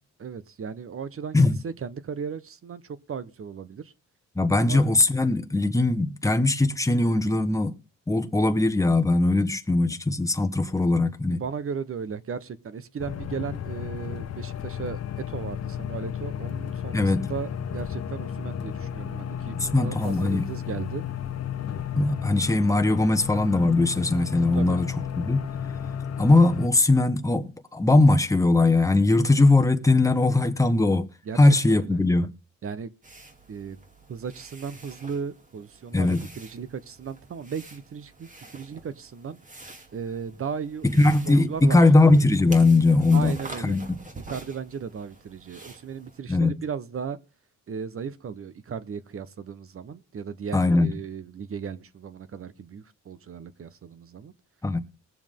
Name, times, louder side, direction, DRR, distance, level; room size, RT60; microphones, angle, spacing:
voice 1, 0.2-3.9 4.6-4.8 11.3-21.0 24.5-24.8 31.2-32.0 32.6-32.9 33.5-33.8 34.1-39.4 39.9-40.9 41.3-41.8 43.1-43.8 44.1-47.2 47.7-54.3, right 6 dB, 45° right, 1.0 m, -36 dB
voice 2, 4.4-7.7 8.1-11.4 16.9-17.3 19.7-20.5 21.9-24.9 25.2-25.4 26.2-31.1 31.4-32.3 35.9-36.2 41.0-43.4 43.6-44.0 46.3-46.6 50.5-50.9 54.6-54.8, left 2 dB, 10° left, 1.1 m, -20 dB
sound 1, 13.0-26.7, left 8 dB, 60° left, 0.9 m, -33 dB
sound 2, 33.0-46.2, right 2 dB, 25° right, 2.3 m, -47 dB
20.0 x 7.1 x 3.7 m
cardioid pair, 90°, 30 cm